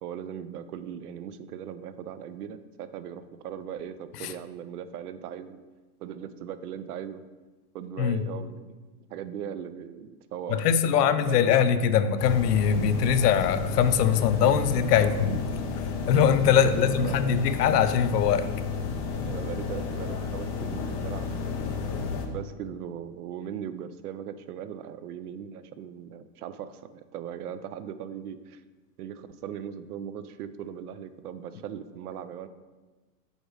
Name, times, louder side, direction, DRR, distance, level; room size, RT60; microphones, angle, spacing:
voice 1, 0.0-5.6 6.0-7.2 7.7-8.8 9.1-10.7 10.9-11.6 14.9-15.7 16.5-17.4 19.2-21.8 22.3-28.6 29.0-32.5, right 9 dB, 70° right, 12 dB, 0.7 m, -39 dB
voice 2, 10.5-15.3 16.1-18.5, left 8 dB, 75° left, 11 dB, 0.7 m, -22 dB
sound 1, 12.2-22.3, left 5 dB, 25° left, 0.5 m, -32 dB
5.3 x 5.0 x 6.4 m, 1.3 s
supercardioid pair, 160°, 47 cm